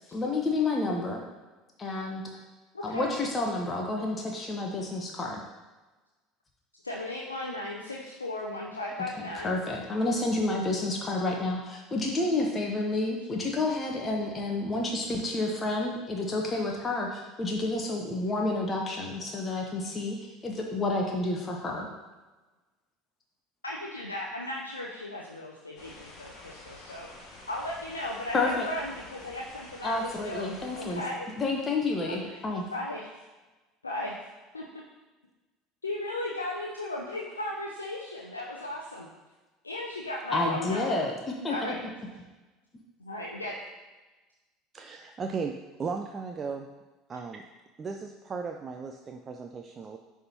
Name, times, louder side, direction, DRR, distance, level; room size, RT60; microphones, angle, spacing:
voice 1, 0.1-1.2 1.8-2.2 2.8-5.4 9.4-20.2 20.4-21.9 28.3-28.7 29.8-31.0 31.4-32.6 40.3-41.7, left 2 dB, 25° left, 0 dB, 0.9 m, -29 dB
voice 2, 2.7-3.1 6.8-9.5 23.6-27.1 27.5-31.3 32.1-32.4 32.7-33.2 33.8-34.2 34.5-34.6 35.8-39.1 39.6-41.0 41.5-41.8 43.0-43.5, left 1 dB, 85° left, -3 dB, 0.6 m, -36 dB
sound 1, 25.8-31.0, left 2 dB, 40° left, 1.8 m, -49 dB
voice 3, 44.7-45.5 45.8-46.7 47.1-47.4 47.8-50.0, right 5 dB, 30° right, 4 dB, 0.4 m, -36 dB
10.5 x 3.5 x 2.8 m, 1.2 s
figure-of-eight pair, 65°, 0 cm